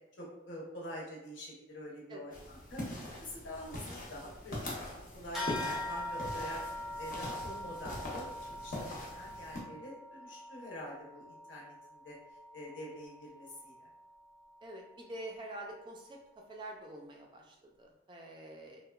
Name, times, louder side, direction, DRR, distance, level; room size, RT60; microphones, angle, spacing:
voice 1, 0.2-2.8 3.2-4.6 4.8-6.6 7.0-12.1 12.5-13.7, left 1 dB, 75° left, -4 dB, 0.8 m, -46 dB
voice 2, 2.1-2.4 14.6-16.2 16.5-18.8, right 1 dB, 25° right, 0 dB, 0.3 m, -46 dB
sound 1, 2.3-9.6, left 1 dB, 45° left, 0.6 m, -42 dB
sound 2, 5.3-15.1, left 1 dB, ahead, 0.7 m, -43 dB
2.8 x 2.1 x 2.3 m, 0.87 s
head